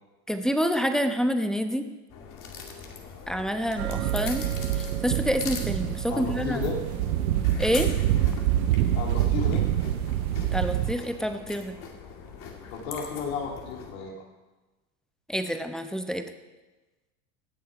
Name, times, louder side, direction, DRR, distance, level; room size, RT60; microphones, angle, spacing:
voice 1, 0.3-1.9 3.3-4.5 5.0-6.6 7.6-7.9 10.5-11.7 15.3-16.2, equal, ahead, 6 dB, 0.9 m, -27 dB
sound 1, 2.1-13.9, left 6 dB, 45° left, 2.3 m, -42 dB
sound 2, 3.8-10.9, right 12 dB, 75° right, 0.9 m, -26 dB
voice 2, 6.1-6.8 8.9-9.7 12.7-14.1, left 5 dB, 70° left, 0 dB, 3.1 m, -33 dB
18.0 x 6.7 x 5.0 m, 1.2 s
hypercardioid pair, 95°, 42 cm